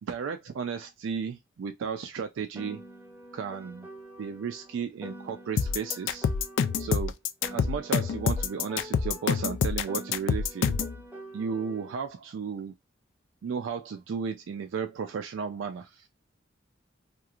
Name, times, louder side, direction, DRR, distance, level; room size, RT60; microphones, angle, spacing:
voice 1, 0.0-2.8 3.3-3.9 4.2-6.3 6.8-7.2 7.5-10.8 11.3-12.7 13.4-16.1, right 6 dB, 75° right, 0.3 m, -34 dB
Piano, 2.5-7.0 7.4-12.0, right 1 dB, 10° right, 0.6 m, -46 dB
sound 1, 5.6-10.9, left 6 dB, 70° left, 0.3 m, -26 dB
2.9 x 2.4 x 2.4 m
head